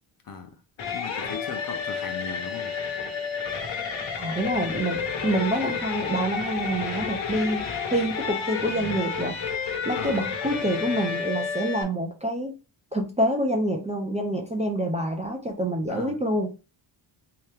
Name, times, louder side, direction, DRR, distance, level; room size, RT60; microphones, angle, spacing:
voice 1, 0.2-0.6 0.9-2.8 10.0-10.3 15.9-16.2, left 6 dB, 45° left, 0.8 m, -37 dB
sound 1, 0.8-11.8, left 6 dB, 80° left, 1.2 m, -31 dB
voice 2, 4.2-9.4 9.9-12.6 12.9-16.5, right 1 dB, 15° right, 0.4 m, -27 dB
3.3 x 2.9 x 3.3 m
wide cardioid pair, 150°, 47 cm